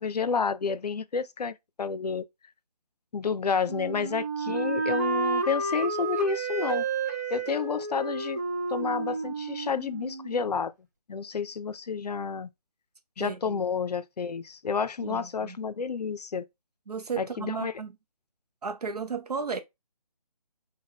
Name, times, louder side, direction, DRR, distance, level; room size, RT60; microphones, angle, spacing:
voice 1, 0.0-2.2 3.1-6.9 7.3-8.4 8.7-10.7 11.1-12.5 13.2-16.5 17.2-17.7, left 5 dB, 85° left, 0.5 m, -30 dB
Wind instrument woodwind instrument, 3.7-10.5, right 3 dB, 25° right, 0.4 m, -31 dB
voice 2, 13.2-13.6 15.0-15.6 16.9-17.9 18.6-19.6, right 5 dB, 75° right, 0.6 m, -34 dB
3.5 x 2.2 x 3.7 m
figure-of-eight pair, 160°, 20 cm